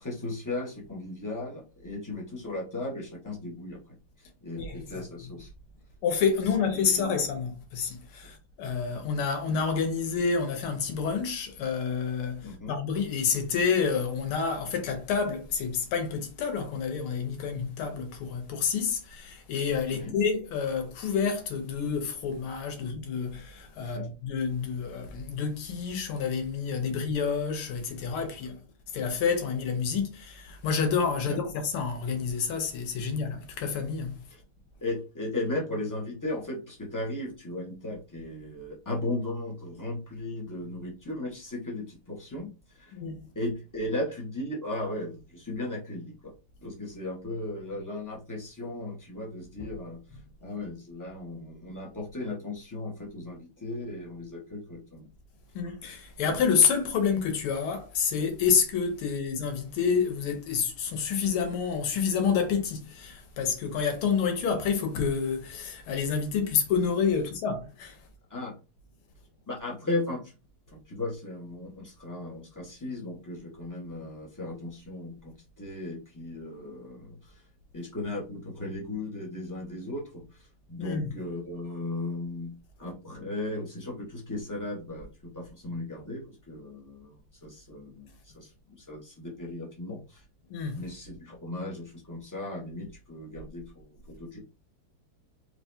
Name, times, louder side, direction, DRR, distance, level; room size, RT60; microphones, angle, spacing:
voice 1, 0.0-3.8 4.2-5.5 6.7-7.2 12.4-12.7 19.9-20.1 23.8-24.1 31.2-31.4 34.3-34.4 34.8-42.5 42.7-43.0 43.3-46.3 46.6-50.0 50.4-55.1 68.3-68.5 69.5-70.3 70.7-77.4 77.7-82.5 82.8-87.1 87.4-90.2 90.7-94.4, left 2 dB, 15° left, 0.7 m, -36 dB
voice 2, 4.6-5.0 6.0-28.6 28.9-34.2 42.9-43.2 49.6-49.7 55.6-68.0 80.8-81.1 90.5-90.8, left 6 dB, 85° left, 1.8 m, -28 dB
4.6 x 2.9 x 2.7 m
omnidirectional pair, 2.3 m